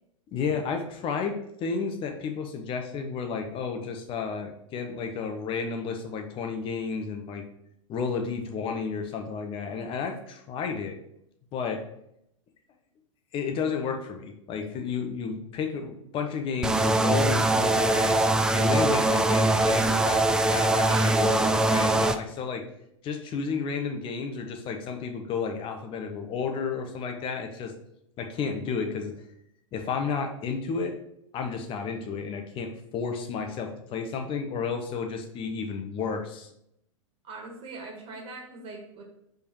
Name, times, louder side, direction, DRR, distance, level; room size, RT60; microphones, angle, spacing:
voice 1, 0.3-7.4 7.9-11.0 11.5-11.8 13.3-18.2 18.5-22.6 23.0-27.7 28.2-29.1 29.7-31.0 31.3-36.5, left 5 dB, 30° left, 4 dB, 1.1 m, -32 dB
sound 1, 16.6-22.1, right 2 dB, 5° right, 0.3 m, -22 dB
voice 2, 20.8-21.2 37.2-39.0, right 3 dB, 35° right, 1 dB, 2.0 m, -41 dB
5.2 x 4.7 x 4.6 m, 0.77 s
figure-of-eight pair, 100°, 17 cm